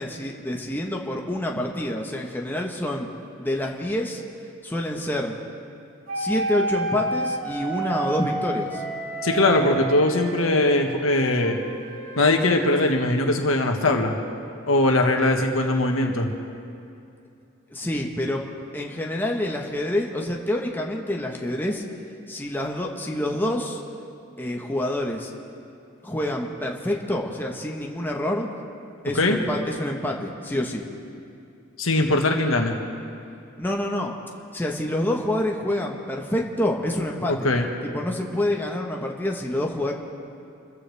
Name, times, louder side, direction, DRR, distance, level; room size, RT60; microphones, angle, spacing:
voice 1, 0.0-3.1 3.4-4.2 4.6-5.3 6.1-8.8 17.7-18.4 18.7-21.8 22.3-23.8 24.4-25.3 26.0-28.5 29.0-30.9 33.6-34.2 34.5-37.5 37.9-39.9, left 1 dB, 10° left, 0 dB, 1.2 m, -27 dB
sound 1, 6.1-10.8 11.4-12.7, right 2 dB, 85° right, 2.8 m, -30 dB
voice 2, 9.2-11.6 12.2-14.2 14.7-16.3 29.1-29.4 31.8-32.8 37.3-37.7, left 2 dB, 90° left, 3 dB, 1.7 m, -21 dB
27.5 x 15.0 x 3.5 m, 2.6 s
head